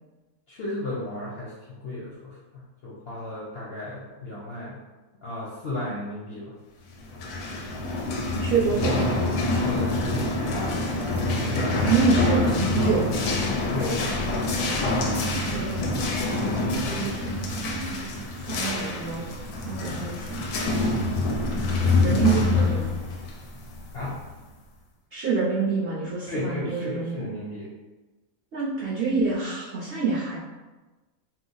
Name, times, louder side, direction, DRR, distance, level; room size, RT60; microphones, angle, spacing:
voice 1, 0.5-2.4 2.8-4.8 5.2-6.5 9.6-10.6 13.7-14.0 20.9-21.2 23.9-24.2 26.3-27.7, left 2 dB, 60° left, -5 dB, 0.6 m, -34 dB
sound 1, 7.0-24.4, left 2 dB, 90° left, 1.1 m, -26 dB
voice 2, 8.4-9.1 11.8-13.3 15.5-18.1 18.5-19.2 19.6-20.5 22.0-22.9 25.1-27.2 28.5-30.4, right 5 dB, 55° right, -7 dB, 0.7 m, -27 dB
3.0 x 2.0 x 3.8 m, 1.2 s
omnidirectional pair, 1.6 m